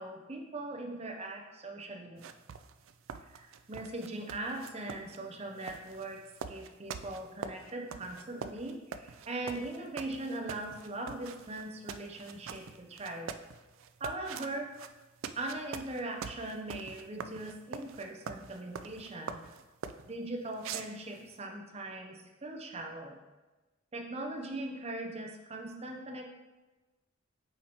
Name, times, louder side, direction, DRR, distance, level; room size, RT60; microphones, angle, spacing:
voice 1, 0.0-2.2 3.3-6.2 6.5-13.3 14.0-14.7 15.4-19.4 20.1-23.2 23.9-26.2, right 2 dB, 30° right, 2 dB, 0.7 m, -40 dB
sound 1, 2.2-20.1 20.6-21.4, right 6 dB, 70° right, 0.3 m, -44 dB
7.9 x 4.3 x 2.9 m, 1.1 s
head